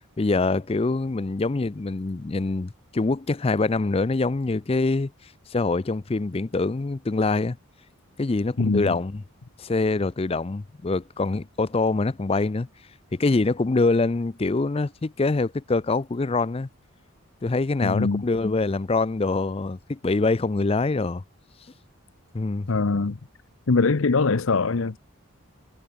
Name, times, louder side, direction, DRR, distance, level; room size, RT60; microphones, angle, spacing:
voice 1, 0.2-7.6 8.2-9.2 9.6-12.7 13.1-16.7 17.4-21.2 22.3-22.7, left 3 dB, 25° left, 0.4 m, -24 dB
voice 2, 8.6-8.9 17.8-18.2 22.7-23.2 23.7-25.0, left 3 dB, 70° left, 0.7 m, -22 dB
head